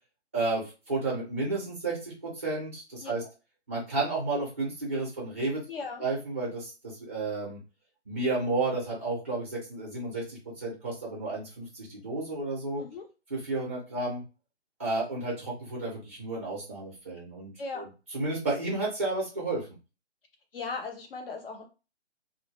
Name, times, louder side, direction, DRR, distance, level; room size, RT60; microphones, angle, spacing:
voice 1, 0.3-3.2 3.7-5.6 6.0-7.6 8.1-12.8 13.3-14.2 14.8-17.9 18.1-19.7, right 2 dB, 15° right, -3 dB, 0.5 m, -32 dB
voice 2, 5.7-6.0 12.8-13.1 17.6-17.9 20.5-21.6, left 4 dB, 50° left, 4 dB, 0.7 m, -37 dB
2.1 x 2.0 x 2.9 m, 0.31 s
hypercardioid pair, 155°, 35 cm